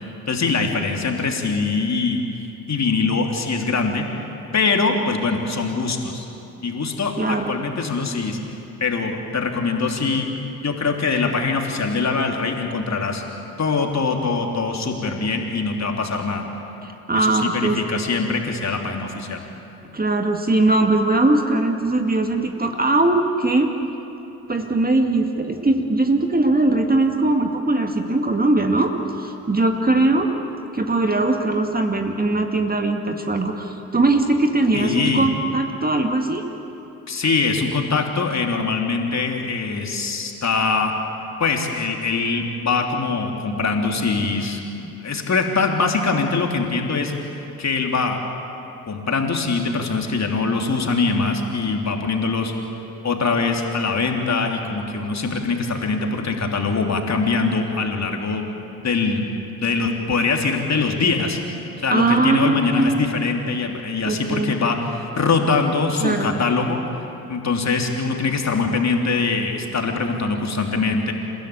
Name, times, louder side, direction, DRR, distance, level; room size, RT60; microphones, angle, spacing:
voice 1, 0.3-2.2 2.7-4.1 4.5-6.2 6.6-8.4 8.8-10.3 10.6-13.2 13.6-16.4 17.2-19.4 34.7-35.3 37.1-40.9 41.4-44.6 45.0-47.1 47.6-48.2 48.9-52.5 53.0-61.4 61.8-66.8 67.3-71.1, left 4 dB, 35° left, 2 dB, 3.3 m, -23 dB
voice 2, 7.2-7.6 16.8-18.0 19.9-23.7 24.5-28.9 29.2-30.3 30.7-36.4 44.8-44.9 61.9-63.0 64.1-64.6 66.0-66.4, right 2 dB, 20° right, 4 dB, 2.1 m, -20 dB
29.5 x 16.0 x 8.4 m, 2.9 s
figure-of-eight pair, 45°, 45 cm